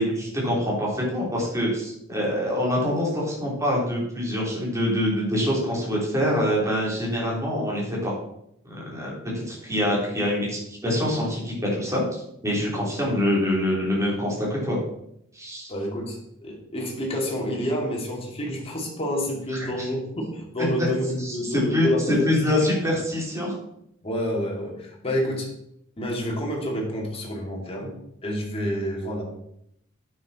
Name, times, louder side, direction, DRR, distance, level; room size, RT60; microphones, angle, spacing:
voice 1, 0.0-8.1 8.6-9.1 9.5-14.8 15.3-15.7 19.5-19.9 20.6-20.9 21.2-23.5, left 1 dB, 15° right, -4 dB, 3.4 m, -25 dB
voice 2, 15.7-22.5 24.0-25.5 26.0-28.0 28.2-29.2, equal, 30° left, -1 dB, 2.4 m, -28 dB
9.0 x 6.8 x 4.2 m, 0.76 s
head